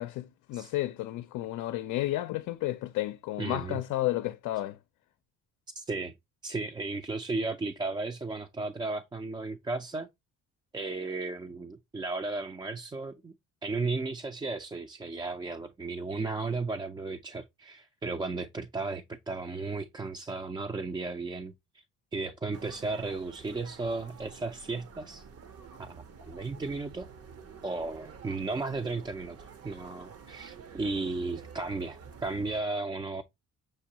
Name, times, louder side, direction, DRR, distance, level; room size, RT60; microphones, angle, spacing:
voice 1, 0.0-4.8, left 15 dB, 80° left, 0.5 m, -32 dB
voice 2, 3.4-3.8 5.8-6.1 6.4-10.1 10.7-13.3 13.6-21.8 22.1-25.2 25.8-25.9 26.2-27.1 27.6-33.2, right 3 dB, 15° right, 0.3 m, -34 dB
sound 1, 22.5-32.6, right 6 dB, 50° right, 0.7 m, -49 dB
6.5 x 2.3 x 2.7 m
cardioid pair, 90°, 30 cm